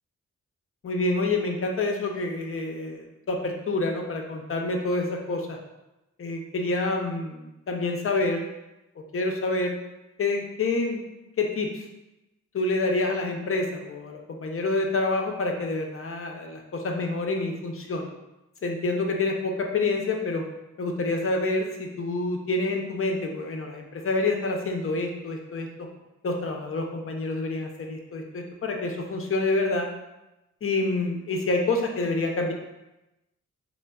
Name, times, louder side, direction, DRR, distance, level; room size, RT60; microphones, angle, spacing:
voice 1, 0.8-5.6 6.2-8.5 9.1-9.8 10.2-11.0 11.4-11.7 12.5-18.1 18.6-20.4 20.8-25.7 26.2-29.9 30.6-32.5, left 2 dB, 45° left, 2 dB, 0.6 m, -27 dB
4.2 x 2.1 x 2.3 m, 0.98 s
cardioid pair, 70°, 32 cm